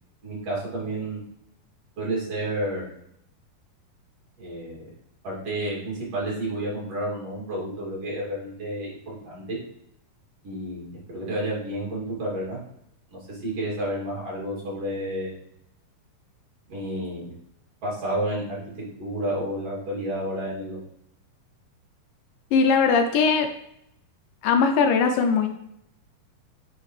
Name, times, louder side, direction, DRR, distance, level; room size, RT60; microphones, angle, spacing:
voice 1, 0.2-1.2 2.0-2.9 4.4-4.9 5.2-9.6 10.4-12.6 13.3-15.4 16.7-17.3 17.8-18.7 19.0-20.8, right 1 dB, 45° right, -5 dB, 3.4 m, -30 dB
voice 2, 22.5-23.5 24.4-25.5, left 5 dB, 80° left, 5 dB, 2.2 m, -20 dB
9.1 x 5.1 x 3.2 m, 0.75 s
omnidirectional pair, 4.2 m